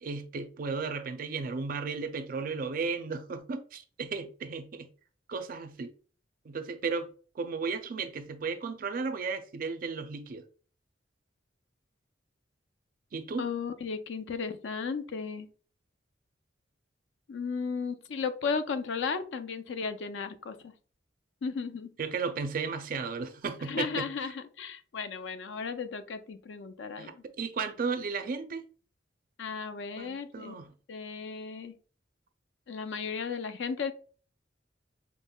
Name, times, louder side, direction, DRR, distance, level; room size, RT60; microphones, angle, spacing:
voice 1, 0.0-4.9 5.3-5.9 6.5-7.1 7.4-10.4 13.1-13.4 22.0-24.1 27.0-28.6 30.0-30.7, right 4 dB, 50° right, 0.4 m, -34 dB
voice 2, 13.4-15.5 17.3-20.7 21.4-21.9 23.7-27.2 29.4-30.6 30.9-31.7 32.7-33.9, left 5 dB, 80° left, 0.4 m, -35 dB
5.2 x 2.0 x 2.2 m
head